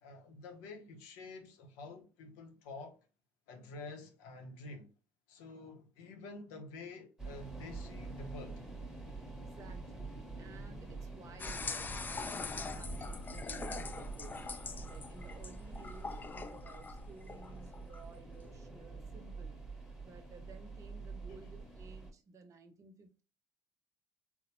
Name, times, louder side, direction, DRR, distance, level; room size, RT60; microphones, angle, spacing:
voice 1, 0.0-3.0 3.5-4.9 5.3-8.6 21.3-21.4, left 3 dB, 85° left, 0.7 m, -49 dB
sound 1, 7.2-22.1, right 3 dB, 5° right, 0.9 m, -46 dB
voice 2, 9.4-14.4 14.8-19.6 20.0-23.2, right 4 dB, 45° right, 0.7 m, -56 dB
sound 2, 11.4-18.6, left 4 dB, 25° left, 0.3 m, -43 dB
3.4 x 2.1 x 2.9 m
supercardioid pair, 80°, 8 cm